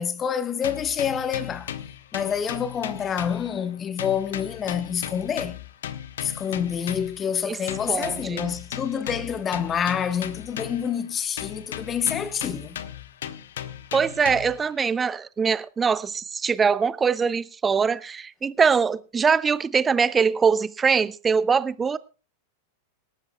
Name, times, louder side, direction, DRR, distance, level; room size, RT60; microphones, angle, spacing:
voice 1, 0.0-1.7 2.1-5.6 6.2-12.8, left 8 dB, 25° left, 1.2 m, -27 dB
sound 1, 0.6-3.7 4.0-7.3 7.7-11.0 11.4-14.7, left 10 dB, 60° left, 0.9 m, -36 dB
voice 2, 7.9-8.5 13.9-22.0, right 6 dB, 15° right, 0.6 m, -23 dB
26.0 x 12.0 x 2.3 m
figure-of-eight pair, 90°, 0 cm